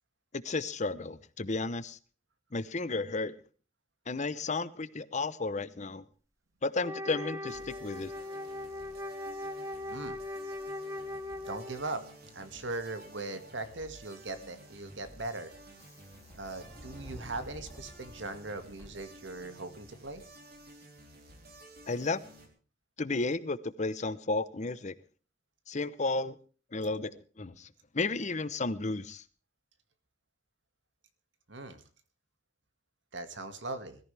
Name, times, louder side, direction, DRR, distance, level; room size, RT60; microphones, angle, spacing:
voice 1, 0.3-2.0 2.5-3.4 4.1-6.0 6.6-8.1 21.9-22.2 23.0-24.9 25.7-26.4 26.7-27.1 27.4-27.7 27.9-29.2, left 3 dB, 40° left, 15 dB, 0.8 m, -33 dB
Wind instrument woodwind instrument, 6.8-12.0, left 2 dB, 15° right, 1.3 m, -39 dB
sound 1, 7.5-22.5, right 1 dB, 55° right, 3.6 m, -53 dB
Subway metro underground, 7.7-19.6, left 1 dB, 15° left, 1.9 m, -56 dB
voice 2, 11.5-12.0 12.3-15.5 16.3-20.2 31.5-31.8 33.1-34.0, right 2 dB, 80° right, 8 dB, 2.1 m, -39 dB
21.5 x 14.5 x 3.4 m, 0.38 s
head